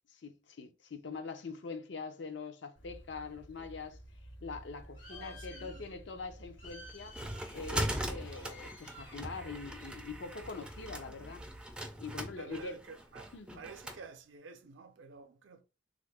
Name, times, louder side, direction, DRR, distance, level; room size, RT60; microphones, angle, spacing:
voice 1, 0.1-4.0 4.4-7.2 7.5-11.4 12.0-12.8 13.3-13.6, left 4 dB, 65° left, 0.5 m, -43 dB
Bird, 2.8-11.7, equal, 85° left, 1.3 m, -52 dB
voice 2, 5.1-5.8 12.3-15.6, right 4 dB, 75° right, 0.5 m, -50 dB
sound 1, 6.6-14.0, right 1 dB, 5° right, 0.3 m, -40 dB
3.4 x 2.5 x 3.3 m
head